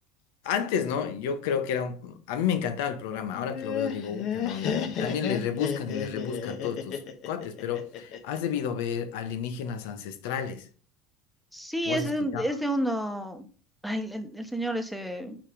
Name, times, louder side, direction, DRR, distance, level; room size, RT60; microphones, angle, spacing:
voice 1, 0.4-10.7 11.9-12.4, left 7 dB, 80° left, 1.1 m, -31 dB
Laughter, 3.3-8.4, left 7 dB, 55° left, 1.2 m, -32 dB
voice 2, 11.5-13.4 13.8-15.4, equal, ahead, 1.1 m, -30 dB
5.6 x 5.0 x 5.1 m
supercardioid pair, 125°, 0 cm